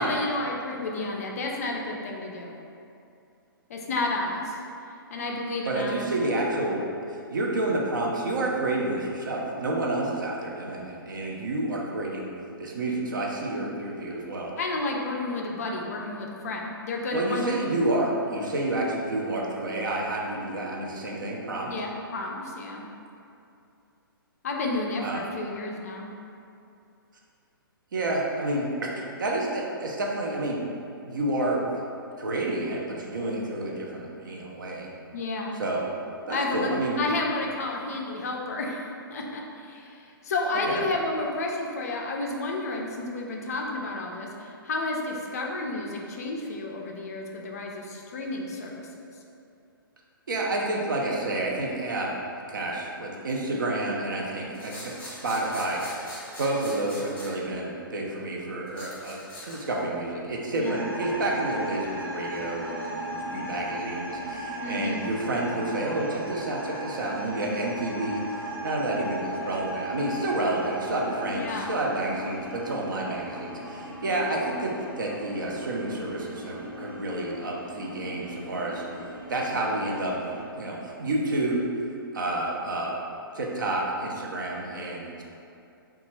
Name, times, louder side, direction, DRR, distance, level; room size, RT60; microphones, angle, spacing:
voice 1, 0.0-2.6 3.7-4.6 5.1-6.4 14.6-17.5 21.7-22.8 24.4-26.1 35.1-35.6 36.3-36.7 37.0-38.8 39.1-48.9 60.6-60.8 64.4-65.1 71.3-71.8, left 2 dB, 45° left, 0 dB, 0.3 m, -31 dB
voice 2, 5.7-6.8 7.3-12.3 12.6-14.5 17.1-21.7 25.0-25.3 27.9-30.6 31.0-31.6 32.2-34.9 35.5-35.8 36.3-37.0 40.7-40.8 50.3-52.1 52.5-78.8 79.3-80.2 80.5-81.7 82.1-82.9 83.3-85.2, right 2 dB, 60° right, -1 dB, 0.5 m, -29 dB
sound 1, 54.5-57.3 58.7-59.9, left 1 dB, 15° left, 0.7 m, -42 dB
sound 2, 60.6-80.5, right 1 dB, 85° right, 0.8 m, -37 dB
2.8 x 2.3 x 3.0 m, 2.6 s
figure-of-eight pair, 120°, 12 cm